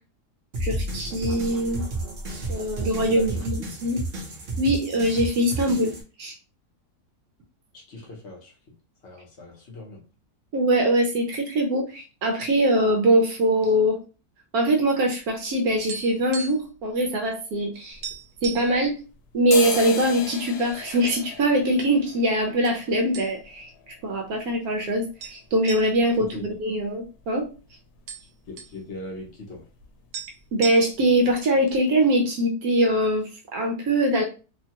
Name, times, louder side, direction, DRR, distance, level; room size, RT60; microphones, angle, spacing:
sound 1, 0.5-6.0, right 2 dB, 45° right, 0.8 m, -32 dB
voice 1, 0.6-1.8 2.5-3.5 3.8-4.0 4.6-5.9 6.2-6.3 10.5-14.0 14.5-18.0 18.4-19.0 19.3-23.7 24.0-27.5 30.5-34.2, right 1 dB, 70° right, 2 dB, 1.0 m, -22 dB
voice 2, 3.0-3.7 7.7-8.7 9.0-10.0 26.2-26.5 28.5-29.6, left 2 dB, 55° left, 0 dB, 0.9 m, -40 dB
sound 2, 15.5-16.8 17.0-17.2 17.6-17.7 18.0-18.8 19.4-20.1 20.5-20.6 21.3-22.0 22.6-22.8 23.1-23.7 24.0-24.1 25.2-27.3 27.6-27.7 27.9-28.8 29.8-29.9 30.1-31.2, right 7 dB, 90° right, 1.2 m, -37 dB
sound 3, 17.9-19.0 19.3-27.0 27.4-27.5 27.7-28.3 28.6-28.8 29.1-29.3 29.6-30.3 30.6-30.8 31.3-31.4 31.7-31.8, left 6 dB, 90° left, 1.2 m, -37 dB
3.0 x 2.2 x 2.8 m, 0.33 s
omnidirectional pair, 1.7 m